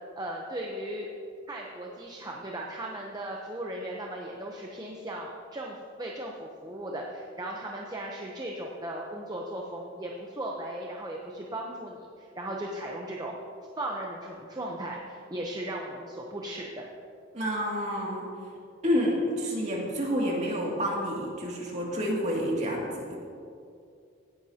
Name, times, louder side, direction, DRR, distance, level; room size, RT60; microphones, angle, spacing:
voice 1, 0.2-1.1 1.5-13.3 13.8-16.9, right 1 dB, 20° right, -1 dB, 0.8 m, -37 dB
voice 2, 17.3-18.3 18.8-23.2, equal, 35° right, -3 dB, 2.4 m, -29 dB
17.0 x 10.5 x 2.9 m, 2.5 s
head